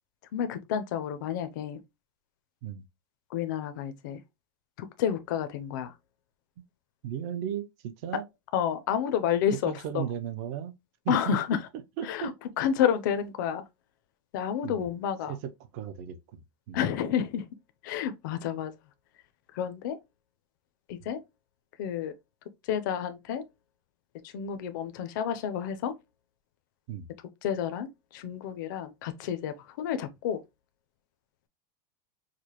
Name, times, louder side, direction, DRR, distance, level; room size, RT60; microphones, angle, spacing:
voice 1, 0.3-1.8 3.3-4.2 4.8-5.9 8.5-10.1 11.1-11.7 12.0-12.3 12.6-13.7 14.3-15.4 16.7-17.5 17.8-18.7 19.5-20.0 20.9-21.2 21.8-22.1 22.6-23.4 24.2-25.9 27.4-30.4, left 9 dB, 50° left, 0.5 m, -30 dB
voice 2, 7.0-8.2 9.5-10.7 11.0-11.4 12.0-12.3 14.6-14.8 15.3-16.8 26.9-27.1, right 9 dB, 40° right, 0.5 m, -36 dB
4.8 x 2.1 x 2.8 m
supercardioid pair, 180°, 13 cm